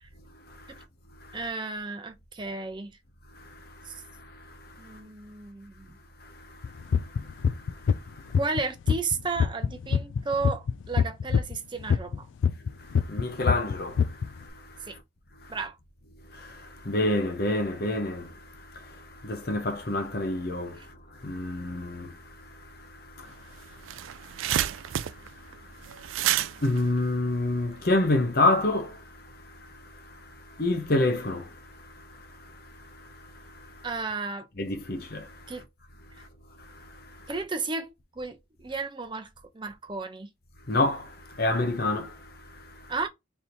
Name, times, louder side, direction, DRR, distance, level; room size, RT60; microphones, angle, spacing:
voice 1, 0.5-0.8 1.2-1.4 3.3-5.0 6.2-8.4 12.8-15.0 15.4-15.6 16.3-33.9 34.6-35.5 36.1-36.3 36.6-37.3 40.7-42.9, left 2 dB, 50° left, 0.8 m, -31 dB
voice 2, 1.3-2.9 3.9-4.0 4.8-5.9 8.4-12.3 14.9-15.0 15.5-15.7 33.8-34.5 35.5-35.6 37.3-39.3 39.5-40.3 42.9-43.1, right 4 dB, 25° right, 0.6 m, -33 dB
sound 1, 6.6-8.6 8.9-12.7 12.9-14.3, left 6 dB, 70° left, 0.3 m, -24 dB
sound 2, 23.3-23.4 23.7-27.9, right 12 dB, 80° right, 0.3 m, -30 dB
3.4 x 2.7 x 4.4 m
head